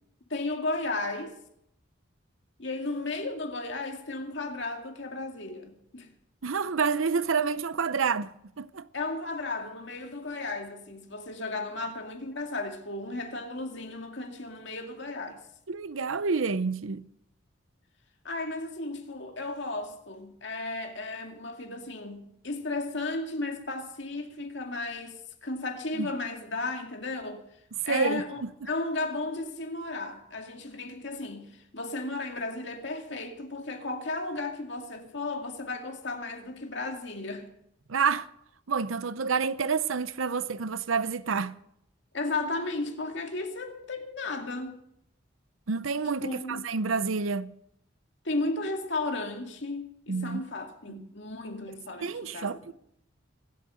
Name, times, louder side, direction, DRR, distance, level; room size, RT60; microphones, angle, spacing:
voice 1, 0.3-1.3 2.6-6.1 8.9-15.4 18.2-27.4 27.8-37.5 42.1-44.8 46.2-46.7 48.2-52.7, left 2 dB, 60° left, 2.3 m, -34 dB
voice 2, 6.4-8.9 15.7-17.0 25.9-26.1 27.9-28.5 37.9-38.3 38.7-41.6 45.7-47.5 50.1-50.4 50.9-51.1 52.0-52.7, right 5 dB, 85° right, 0.7 m, -28 dB
24.5 x 8.5 x 6.4 m
head